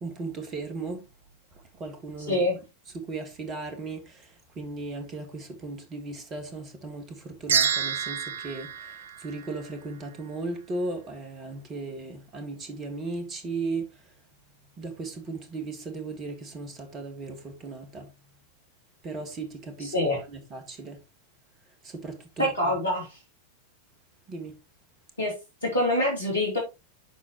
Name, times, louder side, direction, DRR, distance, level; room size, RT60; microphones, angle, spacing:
voice 1, 0.0-1.0 1.8-2.4 3.1-4.0 4.6-8.7 9.2-13.8 14.8-18.1 19.0-19.9 20.3-21.0 22.0-22.5 24.3-24.5, right 3 dB, 25° right, 1.9 m, -36 dB
voice 2, 2.3-2.6 19.8-20.2 22.4-23.2 25.2-25.3 25.6-26.6, left 1 dB, 80° left, 2.7 m, -25 dB
sound 1, 7.5-10.0, right 7 dB, 60° right, 0.5 m, -28 dB
11.0 x 4.2 x 3.0 m
figure-of-eight pair, 90°, 0 cm